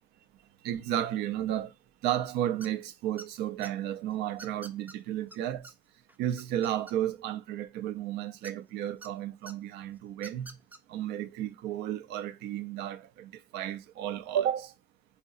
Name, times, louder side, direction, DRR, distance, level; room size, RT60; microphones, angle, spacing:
voice 1, 0.6-1.7 2.0-5.7 6.2-10.5 10.9-14.7, right 11 dB, 85° right, 0.4 m, -33 dB
sound 1, 2.6-2.9 3.2-3.7 4.4-5.0 5.3-5.4 5.6-5.7 6.1-7.3 8.4-9.1 9.5-9.6 10.1-10.8, right 2 dB, 10° right, 0.4 m, -47 dB
3.9 x 2.7 x 2.4 m
cardioid pair, 110°, 17 cm